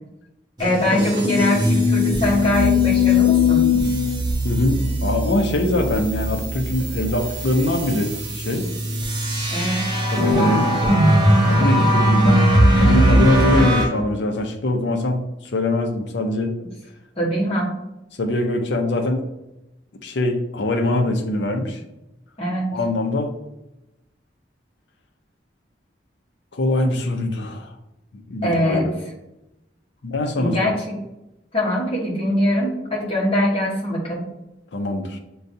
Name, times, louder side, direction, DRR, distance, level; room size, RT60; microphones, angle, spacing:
voice 1, 0.6-3.7 9.5-9.8 16.6-16.7 17.2-17.7 22.4-22.7 28.4-28.9 30.4-30.8 31.5-34.2, equal, 35° left, -4 dB, 1.0 m, -22 dB
sound 1, 0.6-13.9, left 1 dB, 25° right, 0.7 m, -19 dB
voice 2, 4.4-8.6 10.1-10.7 11.5-16.5 18.2-19.3 20.0-21.8 22.7-23.3 26.5-27.7 28.1-28.9 30.0-30.7 34.7-35.2, left 1 dB, 80° left, 4 dB, 0.6 m, -23 dB
6.5 x 2.3 x 2.6 m, 0.92 s
head